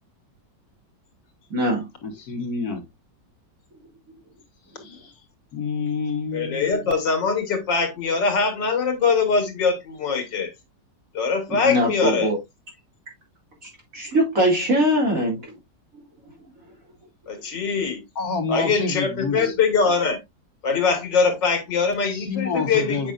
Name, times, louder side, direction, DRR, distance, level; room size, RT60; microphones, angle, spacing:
voice 1, 1.5-1.9 11.5-12.4 13.6-15.5, equal, 50° right, 2.8 m, -22 dB
voice 2, 2.0-2.8 4.8-5.1 5.5-6.7 18.1-19.5 22.1-23.1, left 4 dB, 55° left, 1.8 m, -28 dB
voice 3, 6.3-10.5 11.1-12.3 17.3-18.0 18.5-20.2 20.6-23.1, left 5 dB, 80° left, 2.3 m, -22 dB
7.9 x 5.2 x 2.4 m
omnidirectional pair, 1.9 m